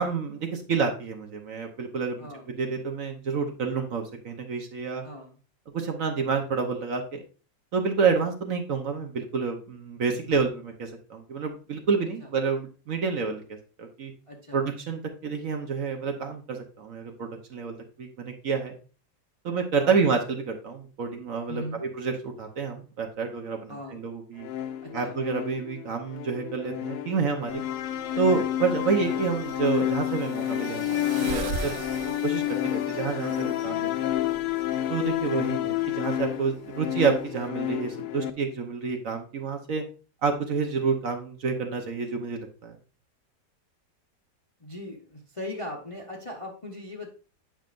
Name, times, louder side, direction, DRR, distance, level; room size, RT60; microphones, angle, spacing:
voice 1, 0.0-2.3 2.6-5.0 5.7-7.2 7.7-13.4 13.8-14.1 14.5-18.7 19.4-24.5 24.9-27.6 28.2-31.8 32.2-32.4 32.7-33.9 34.9-39.8 40.2-42.8, right 5 dB, 55° right, 4 dB, 1.2 m, -28 dB
voice 2, 5.0-5.4 12.2-12.3 14.3-14.6 19.7-20.0 21.5-21.8 23.7-24.0 24.8-25.2 44.6-47.1, left 1 dB, 25° left, 0 dB, 0.7 m, -39 dB
sound 1, 24.4-38.3, left 12 dB, 75° left, 1.0 m, -30 dB
sound 2, 27.5-37.5, right 5 dB, 80° right, 0.5 m, -41 dB
8.8 x 5.6 x 2.5 m, 0.36 s
omnidirectional pair, 1.8 m